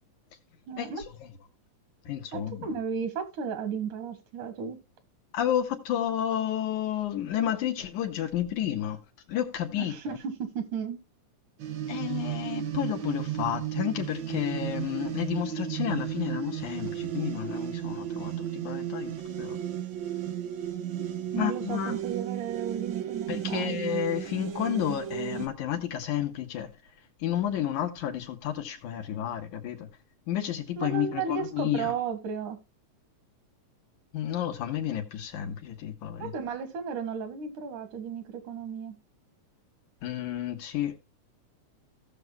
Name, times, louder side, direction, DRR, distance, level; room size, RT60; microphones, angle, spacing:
voice 1, 0.7-1.0 2.3-4.8 9.8-11.0 21.3-23.8 30.8-32.6 36.2-39.0, right 6 dB, 85° right, 3.2 m, -34 dB
voice 2, 2.0-2.7 5.3-9.0 9.3-10.2 11.9-19.6 21.4-22.0 23.3-26.7 27.2-29.9 30.3-31.9 34.1-36.3 40.0-41.0, left 10 dB, 85° left, 2.8 m, -31 dB
sound 1, 11.6-25.5, right 10 dB, 60° right, 1.2 m, -34 dB
17.0 x 6.7 x 2.2 m
omnidirectional pair, 3.4 m